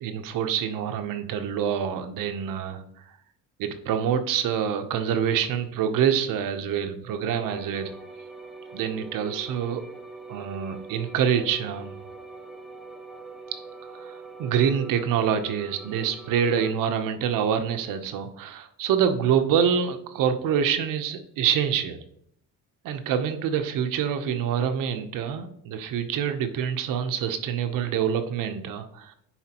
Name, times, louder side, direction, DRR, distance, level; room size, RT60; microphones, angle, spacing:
voice 1, 0.0-2.8 3.6-7.9 8.7-9.8 10.3-11.9 13.9-22.0 22.8-29.1, right 8 dB, 70° right, 8 dB, 0.8 m, -26 dB
sound 1, 7.4-16.7, right 3 dB, ahead, 0.4 m, -43 dB
9.9 x 4.2 x 2.9 m, 0.72 s
cardioid pair, 165°, 34 cm